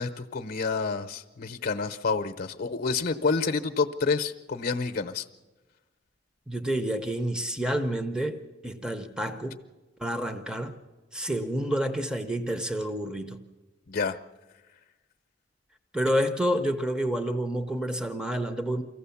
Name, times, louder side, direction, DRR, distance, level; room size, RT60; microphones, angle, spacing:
voice 1, 0.0-5.2 13.9-14.2, left 4 dB, 55° left, 9 dB, 0.7 m, -28 dB
voice 2, 6.5-9.6 10.0-10.8 11.1-13.4 15.9-18.8, right 1 dB, 5° right, 7 dB, 0.7 m, -29 dB
24.0 x 15.5 x 7.1 m, 1.2 s
head